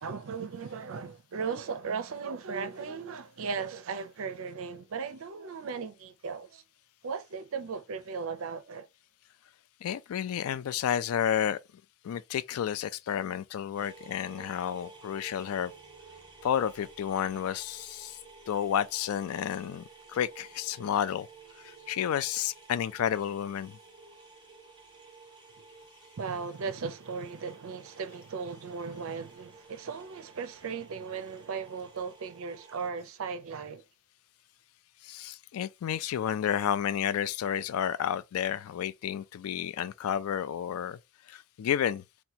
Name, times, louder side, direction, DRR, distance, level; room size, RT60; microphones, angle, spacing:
voice 1, 0.0-6.6 7.0-8.9 26.2-33.8, right 5 dB, 65° right, 0.5 m, -37 dB
voice 2, 9.8-11.6 12.0-15.7 16.4-18.2 18.5-21.3 21.6-23.8 35.0-41.0 41.3-42.0, left 9 dB, 70° left, 0.3 m, -31 dB
sound 1, 13.8-32.9, right 4 dB, 20° right, 0.6 m, -53 dB
2.8 x 2.2 x 4.0 m
head